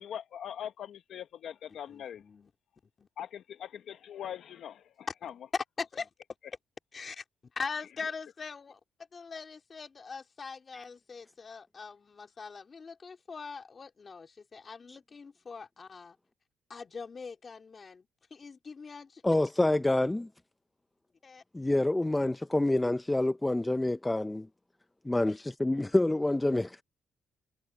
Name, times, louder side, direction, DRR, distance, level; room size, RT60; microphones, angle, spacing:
voice 1, 0.0-2.2 3.2-5.3, left 9 dB, 70° left, 0.9 m, -42 dB
voice 2, 1.7-2.5 3.0-3.1 5.8-6.1 6.9-7.2 7.6-8.8 9.1-16.2 16.7-19.2 21.2-21.4, left 5 dB, 40° left, 3.6 m, -42 dB
voice 3, 19.2-20.3 21.5-24.5 25.0-26.8, left 2 dB, 10° left, 0.5 m, -27 dB
cardioid pair, 90°, 0 cm